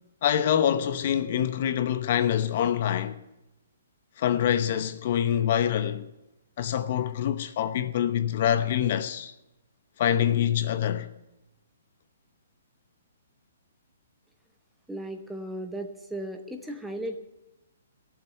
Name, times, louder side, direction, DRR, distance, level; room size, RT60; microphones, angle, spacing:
voice 1, 0.2-3.2 4.2-6.1 6.6-9.3 10.0-11.1, left 10 dB, 45° left, 0.9 m, -25 dB
voice 2, 14.9-17.2, right 1 dB, 5° right, 1.1 m, -36 dB
15.0 x 7.4 x 9.9 m
hypercardioid pair, 160°, 0 cm